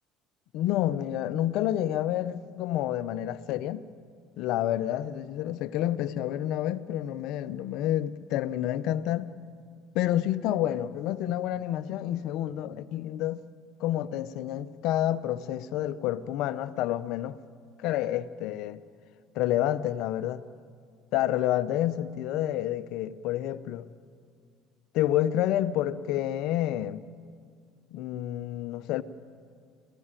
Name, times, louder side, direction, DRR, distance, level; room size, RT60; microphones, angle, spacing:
voice 1, 0.5-3.8 4.4-9.3 9.9-13.4 13.8-17.4 17.8-18.8 19.3-20.4 21.1-23.8 24.9-27.0 27.9-29.0, left 12 dB, 65° left, 0.9 m, -29 dB
27.0 x 17.0 x 9.0 m
hypercardioid pair, 75°, 0 cm